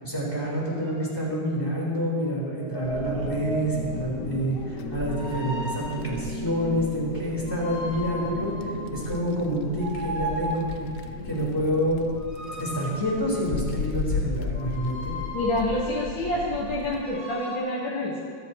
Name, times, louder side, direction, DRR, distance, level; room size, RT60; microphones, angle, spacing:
voice 1, 0.0-8.5 8.9-10.9 11.2-12.1 12.6-15.1, equal, 10° left, -5 dB, 4.1 m, -28 dB
sound 1, 0.8-1.1 2.6-4.1 5.1-6.2 7.5-9.2 9.7-11.0 12.2-13.8 14.5-15.9 16.9-17.6, right 1 dB, 25° right, 4.3 m, -36 dB
Wind, 2.8-17.0, left 5 dB, 60° left, 0.8 m, -35 dB
sound 2, 4.7-10.2, right 3 dB, 65° right, 0.6 m, -39 dB
voice 2, 15.3-18.2, left 1 dB, 90° left, -5 dB, 2.3 m, -27 dB
23.0 x 14.0 x 3.1 m, 2.2 s
omnidirectional pair, 2.0 m